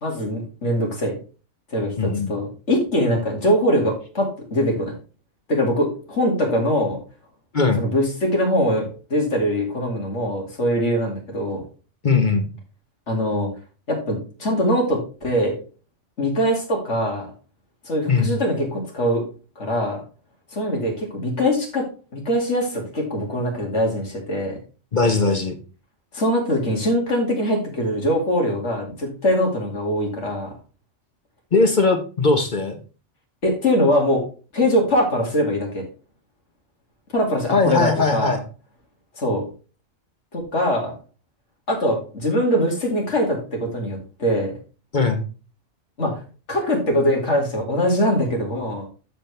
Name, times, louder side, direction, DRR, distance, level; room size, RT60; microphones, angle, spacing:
voice 1, 0.0-1.2 1.7-4.9 5.5-7.0 7.8-11.6 13.1-13.5 13.9-15.5 16.2-17.3 17.8-19.2 19.6-20.0 20.5-21.9 22.1-24.6 26.1-30.5 33.4-34.2 34.5-35.8 37.1-38.4 39.2-39.4 40.3-41.0 41.7-44.5 46.0-46.2 46.5-48.8, equal, 75° left, 0 dB, 2.6 m, -22 dB
voice 2, 2.0-2.3 7.5-7.9 12.0-12.5 18.1-18.3 24.9-25.5 31.5-32.8 37.5-38.4 44.9-45.2, left 3 dB, 45° left, 5 dB, 1.0 m, -19 dB
13.0 x 4.5 x 3.3 m, 0.36 s
omnidirectional pair, 1.2 m